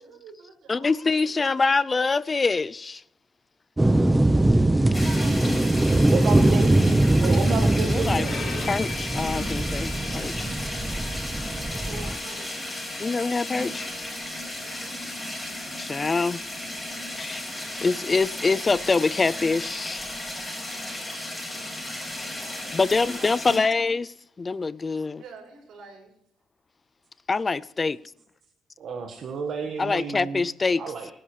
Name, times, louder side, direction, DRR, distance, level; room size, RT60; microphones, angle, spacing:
voice 1, 0.0-0.9 1.2-1.4 4.8-5.9 8.1-8.8 11.7-12.6 14.6-15.1 22.0-23.8 25.2-26.1, right 4 dB, 80° right, 5.9 m, -45 dB
voice 2, 0.7-3.0 7.8-8.3 8.7-10.5 13.0-13.9 15.8-16.4 17.1-17.4 17.8-20.1 22.7-25.2 27.3-28.0 29.8-30.8, left 4 dB, 30° left, 0.4 m, -25 dB
sound 1, 3.8-12.1, right 1 dB, 15° right, 1.0 m, -22 dB
sound 2, 4.9-23.6, left 1 dB, 10° left, 7.4 m, -34 dB
voice 3, 6.1-6.7 7.2-8.3 28.8-30.5 30.8-31.1, right 5 dB, 60° right, 1.5 m, -30 dB
Bowed string instrument, 8.2-14.2, left 5 dB, 50° left, 4.3 m, -41 dB
24.5 x 11.0 x 3.3 m
cardioid pair, 90°, 0 cm